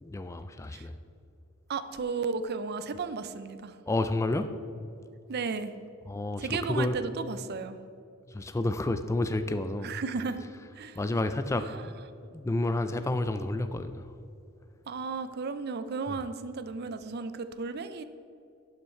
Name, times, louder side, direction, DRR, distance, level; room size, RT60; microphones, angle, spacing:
voice 1, 0.0-0.9 3.9-4.5 6.1-7.0 8.3-9.9 11.0-12.0 12.3-14.0, left 2 dB, 15° left, 9 dB, 0.3 m, -30 dB
voice 2, 1.7-3.8 5.3-5.7 6.4-7.8 9.8-11.0 11.6-11.9 14.9-18.0, right 4 dB, 50° right, 11 dB, 0.5 m, -34 dB
12.0 x 5.6 x 4.4 m, 2.6 s
head